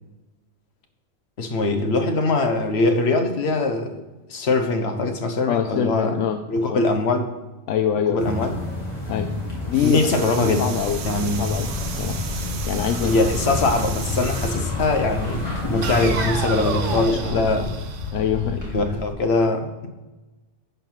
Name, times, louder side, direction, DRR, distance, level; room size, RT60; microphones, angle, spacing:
voice 1, 1.4-4.0 4.3-6.1 6.5-7.3 8.1-8.5 9.8-10.7 11.0-11.4 13.0-17.7 18.5-19.9, left 2 dB, 60° left, 6 dB, 1.3 m, -22 dB
voice 2, 5.5-6.8 7.7-8.5 9.1-9.3 9.7-10.0 10.4-11.0 11.4-12.2 12.7-13.1 17.2-17.4 18.1-18.6, left 8 dB, 80° left, 7 dB, 0.9 m, -25 dB
sound 1, 8.2-17.1, left 1 dB, 35° left, 2.6 m, -30 dB
sound 2, 9.7-14.7 15.8-18.7, right 6 dB, 85° right, 1.2 m, -33 dB
sound 3, 10.7-19.1, left 3 dB, 15° left, 2.6 m, -32 dB
11.0 x 4.5 x 5.7 m, 1.1 s
omnidirectional pair, 1.2 m